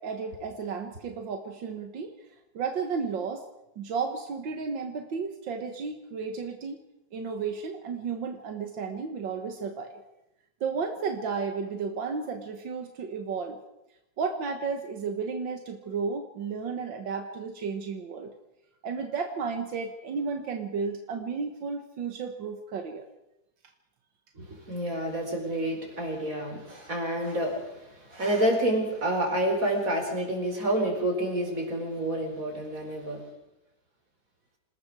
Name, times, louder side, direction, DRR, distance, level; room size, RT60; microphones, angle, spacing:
voice 1, 0.0-2.1 2.5-3.4 3.8-6.8 7.1-9.9 10.6-13.6 14.2-18.3 18.8-23.1, right 5 dB, 85° right, 5 dB, 2.1 m, -33 dB
voice 2, 24.4-33.2, right 1 dB, 45° right, 1 dB, 5.4 m, -29 dB
27.5 x 19.5 x 4.8 m, 0.90 s
omnidirectional pair, 2.0 m